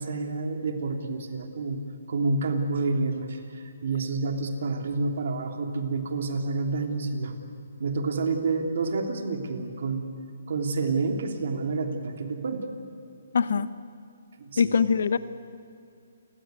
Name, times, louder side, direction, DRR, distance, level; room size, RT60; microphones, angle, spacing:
voice 1, 0.0-1.8 2.1-7.3 7.8-10.1 10.5-12.6 14.4-14.8, right 3 dB, 60° right, 4 dB, 3.3 m, -29 dB
voice 2, 13.3-13.7 14.6-15.2, left 6 dB, 70° left, 14 dB, 1.1 m, -22 dB
29.5 x 17.5 x 9.6 m, 2.6 s
hypercardioid pair, 155°, 0 cm